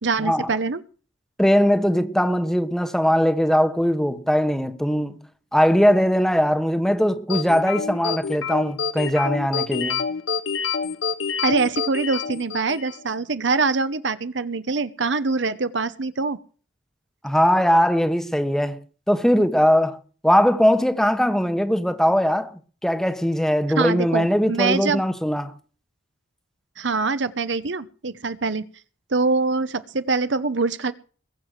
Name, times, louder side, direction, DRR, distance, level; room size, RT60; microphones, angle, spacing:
voice 1, 0.0-0.8 11.4-16.4 23.8-25.0 26.8-28.7 29.1-30.9, right 4 dB, 65° right, 1.0 m, -24 dB
voice 2, 1.4-5.2 5.5-10.0 17.2-18.8 19.1-25.5, equal, ahead, 1.1 m, -20 dB
sound 1, 7.3-13.0, left 5 dB, 85° left, 1.7 m, -27 dB
21.5 x 7.6 x 6.6 m
head